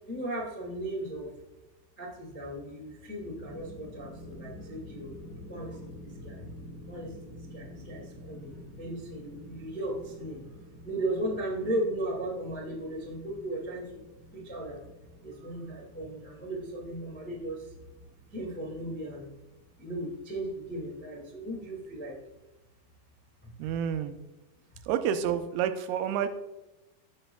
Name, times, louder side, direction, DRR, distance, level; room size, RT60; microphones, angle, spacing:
voice 1, 0.0-1.3 2.0-5.1 5.5-6.4 6.9-10.4 10.8-13.8 14.3-14.8 15.2-17.6 18.3-19.3 19.8-22.2, right 1 dB, 20° left, -4 dB, 0.3 m, -36 dB
sound 1, 3.1-21.9, left 1 dB, 85° left, 0.8 m, -49 dB
voice 2, 23.6-24.2 24.9-26.3, right 9 dB, 85° right, 8 dB, 2.5 m, -29 dB
15.0 x 6.3 x 2.3 m, 1.1 s
omnidirectional pair, 4.4 m